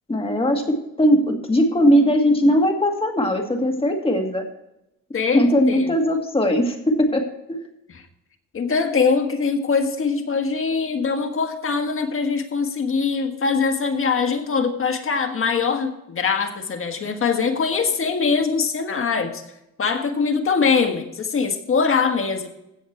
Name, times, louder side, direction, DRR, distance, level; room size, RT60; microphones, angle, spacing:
voice 1, 0.1-4.5 5.3-7.6, equal, 15° left, 3 dB, 2.1 m, -19 dB
voice 2, 5.1-5.9 7.9-8.0 8.5-19.4 19.8-22.5, left 5 dB, 40° left, 5 dB, 1.6 m, -22 dB
16.5 x 6.5 x 4.6 m, 0.86 s
cardioid pair, 135°, 34 cm